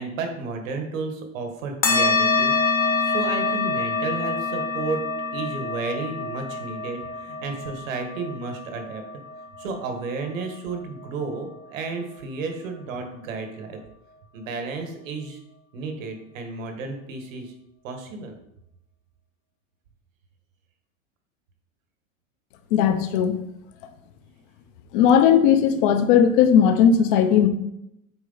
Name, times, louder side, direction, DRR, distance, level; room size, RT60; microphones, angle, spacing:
voice 1, 0.0-2.5 3.0-5.0 5.3-9.0 9.6-13.8 14.3-15.4 15.7-17.5 17.8-18.4, right 4 dB, 75° right, 5 dB, 1.6 m, -32 dB
sound 1, 1.8-10.7, left 3 dB, 25° left, 1.0 m, -26 dB
voice 2, 22.7-23.3 24.9-27.5, left 8 dB, 40° left, 8 dB, 0.8 m, -17 dB
8.0 x 4.3 x 4.0 m, 0.83 s
supercardioid pair, 160°, 40 cm